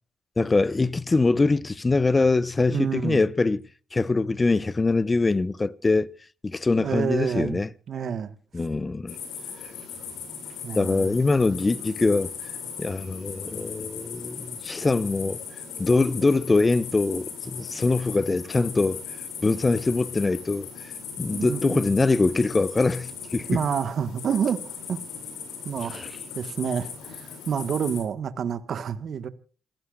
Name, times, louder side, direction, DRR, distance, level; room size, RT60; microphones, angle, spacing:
voice 1, 0.4-3.6 3.9-6.1 6.4-7.7 8.5-9.2 10.7-12.3 12.8-15.4 15.8-19.0 19.4-20.7 21.2-23.6 25.9-26.1, left 3 dB, 30° left, 0.9 m, -23 dB
voice 2, 2.7-3.2 6.8-7.6 7.9-8.3 10.6-11.2 21.3-21.9 23.5-25.0 25.6-26.1 26.3-29.3, right 7 dB, 60° right, 1.5 m, -28 dB
sound 1, 9.1-28.0, left 6 dB, 75° left, 7.3 m, -38 dB
28.5 x 15.5 x 2.5 m
hypercardioid pair, 50°, 0 cm